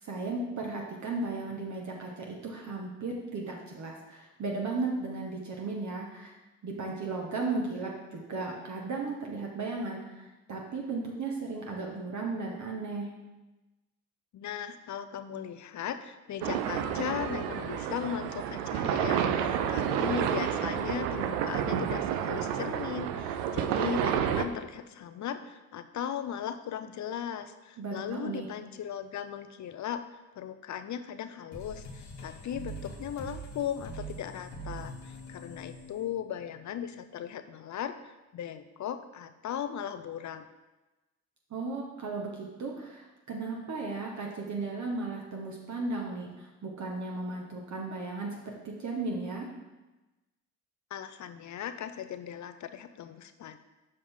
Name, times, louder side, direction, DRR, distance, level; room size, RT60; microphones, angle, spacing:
voice 1, 0.0-6.3 6.6-13.2 27.8-28.5 41.5-49.5, right 3 dB, 45° right, -1 dB, 1.2 m, -35 dB
voice 2, 14.3-30.0 30.4-40.5 50.9-53.6, left 9 dB, 45° left, 10 dB, 0.6 m, -37 dB
sound 1, 16.4-24.5, right 9 dB, 85° right, 0.6 m, -30 dB
sound 2, 31.5-36.8, right 1 dB, 85° left, 1.3 m, -43 dB
6.6 x 5.3 x 3.6 m, 1.1 s
hypercardioid pair, 55°, 39 cm